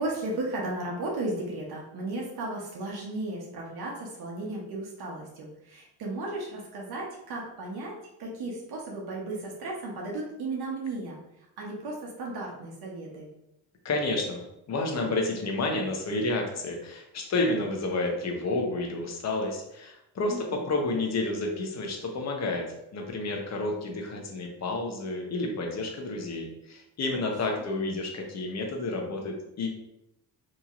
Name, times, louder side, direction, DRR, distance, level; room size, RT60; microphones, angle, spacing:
voice 1, 0.0-11.2 11.6-13.3 20.3-20.7 27.1-27.6, right 2 dB, 65° right, -3 dB, 0.9 m, -35 dB
voice 2, 13.8-14.4 14.7-29.7, left 2 dB, 40° left, 2 dB, 0.8 m, -30 dB
2.9 x 2.7 x 2.4 m, 0.85 s
cardioid pair, 90°, 40 cm